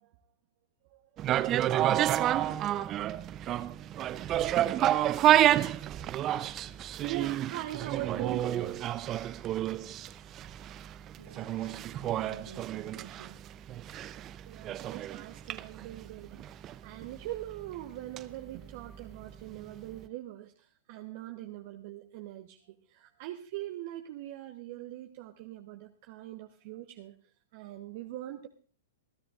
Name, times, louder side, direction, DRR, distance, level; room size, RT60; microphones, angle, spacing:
sound 1, 1.2-19.3 19.6-19.7, right 12 dB, 30° right, 0.6 m, -30 dB
voice 1, 7.0-8.8 13.0-13.1 14.5-27.1 27.5-28.5, right 14 dB, 50° right, 4 dB, 1.1 m, -42 dB
voice 2, 11.2-13.4, right 4 dB, 80° right, 5 dB, 1.9 m, -50 dB
26.5 x 13.5 x 2.5 m, 0.38 s
hypercardioid pair, 110°, 0 cm